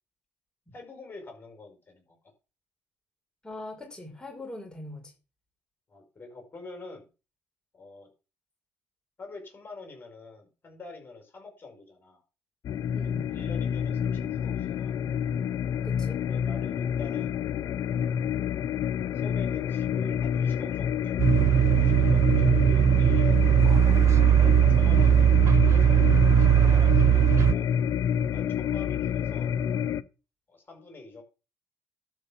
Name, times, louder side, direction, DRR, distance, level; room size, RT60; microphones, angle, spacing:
voice 1, 0.7-2.2 5.9-7.1 7.7-8.1 9.2-12.2 13.0-15.0 16.2-17.4 17.8-18.4 19.1-23.7 24.3-27.7 28.2-29.6 30.5-31.2, left 3 dB, 35° left, 5.9 m, -45 dB
voice 2, 3.4-5.1 12.9-13.3 15.8-16.2, left 1 dB, 15° left, 5.6 m, -41 dB
sound 1, 12.6-30.0, left 8 dB, 60° left, 0.7 m, -28 dB
Post Driver, 21.2-27.5, right 11 dB, 50° right, 0.5 m, -19 dB
12.0 x 5.3 x 7.4 m
supercardioid pair, 65°, 6 cm